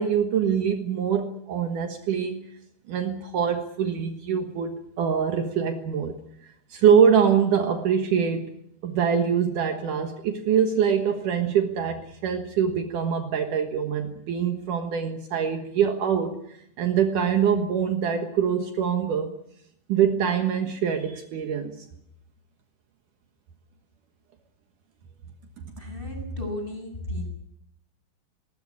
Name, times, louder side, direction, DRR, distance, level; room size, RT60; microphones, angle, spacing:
voice 1, 0.0-2.4 2.9-6.1 6.7-8.5 8.8-16.4 16.8-19.3 19.9-21.8, right 7 dB, 65° right, 5 dB, 2.8 m, -24 dB
voice 2, 25.7-27.3, left 1 dB, 15° left, 3 dB, 7.4 m, -33 dB
19.5 x 19.5 x 9.8 m, 0.74 s
omnidirectional pair, 4.1 m